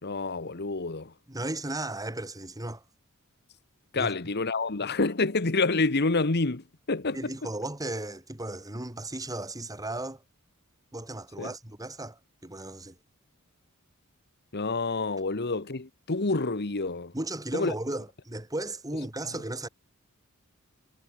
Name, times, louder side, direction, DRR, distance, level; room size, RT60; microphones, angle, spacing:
voice 1, 0.0-1.1 3.9-7.3 11.4-11.5 14.5-17.1 17.5-17.7, left 3 dB, 50° left, 1.4 m, -28 dB
voice 2, 1.3-2.8 3.9-4.1 7.1-10.2 10.9-13.0 17.1-19.7, right 2 dB, 15° right, 2.6 m, -35 dB
head